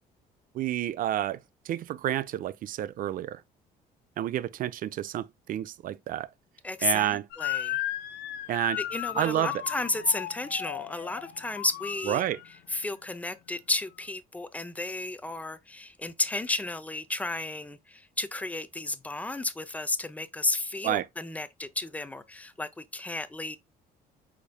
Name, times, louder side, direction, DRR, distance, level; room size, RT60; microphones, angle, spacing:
voice 1, 0.5-1.4 1.7-3.4 4.2-6.3 6.8-7.2 8.5-8.8 9.2-9.6 12.1-12.4 20.8-21.1, right 12 dB, 55° right, 0.5 m, -29 dB
voice 2, 6.6-7.8 8.8-12.2 12.7-23.6, left 2 dB, 10° left, 0.5 m, -32 dB
Motor vehicle (road) / Siren, 7.3-12.6, left 14 dB, 75° left, 0.6 m, -35 dB
5.1 x 4.1 x 2.3 m
cardioid pair, 110°, 17 cm